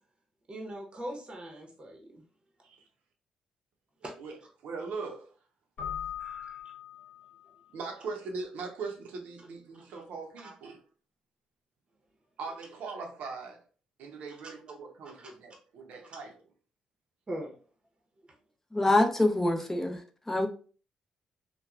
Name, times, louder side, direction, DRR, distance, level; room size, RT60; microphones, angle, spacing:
voice 1, 0.5-2.2 4.0-4.1 6.2-6.6 9.8-10.0 10.4-10.5 15.0-15.3 16.0-16.1 17.3-17.6, right 1 dB, 40° right, 0.8 m, -41 dB
voice 2, 4.6-5.3 7.7-10.8 12.4-13.6 14.0-16.4, right 4 dB, 80° right, 0.6 m, -40 dB
Keyboard (musical), 5.8-7.6, left 9 dB, 70° left, 1.0 m, -40 dB
voice 3, 18.7-20.0 20.3-20.5, left 2 dB, 15° left, 0.6 m, -25 dB
3.0 x 2.1 x 2.3 m
supercardioid pair, 60°, 3 cm